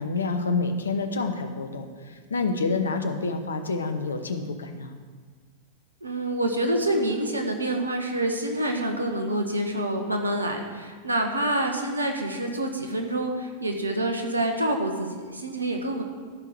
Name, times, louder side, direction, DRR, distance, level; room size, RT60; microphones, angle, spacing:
voice 1, 0.0-4.9, left 3 dB, 70° left, 7 dB, 0.9 m, -28 dB
voice 2, 6.0-16.0, right 1 dB, 80° right, 3 dB, 1.3 m, -27 dB
13.5 x 5.9 x 6.6 m, 1.5 s
figure-of-eight pair, 90°, 0 cm